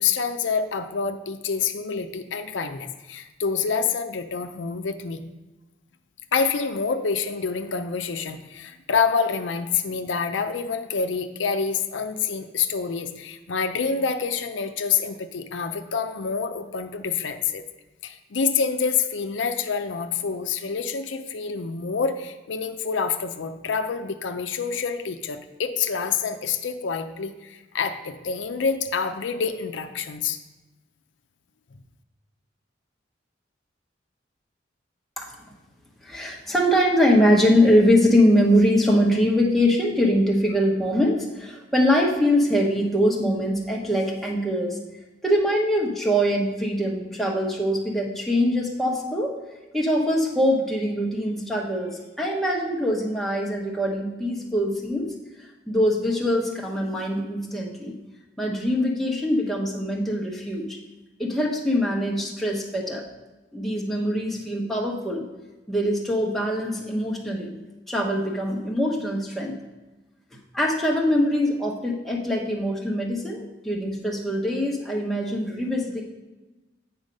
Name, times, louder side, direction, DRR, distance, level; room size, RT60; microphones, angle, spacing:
voice 1, 0.0-5.2 6.3-17.6 18.0-30.4, left 5 dB, 85° left, 8 dB, 0.6 m, -27 dB
voice 2, 36.0-44.8 45.2-49.4 49.7-55.1 55.7-57.9 58.4-60.8 61.2-63.0 63.5-65.2 65.7-67.5 67.9-69.6 70.5-76.0, equal, ahead, -3 dB, 1.0 m, -23 dB
8.9 x 4.3 x 5.3 m, 1.1 s
head